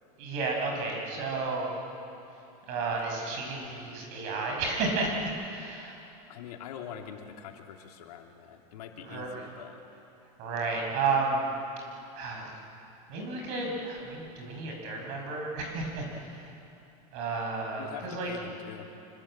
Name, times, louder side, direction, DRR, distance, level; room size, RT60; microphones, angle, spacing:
voice 1, 0.2-1.7 2.7-6.0 9.0-9.5 10.4-11.5 12.2-12.4 13.1-16.5 17.1-18.3, right 3 dB, 40° right, 1 dB, 6.1 m, -32 dB
voice 2, 6.3-9.8 17.8-18.9, left 8 dB, 80° left, 2 dB, 3.1 m, -44 dB
26.0 x 24.5 x 8.9 m, 2.8 s
supercardioid pair, 180°, 20 cm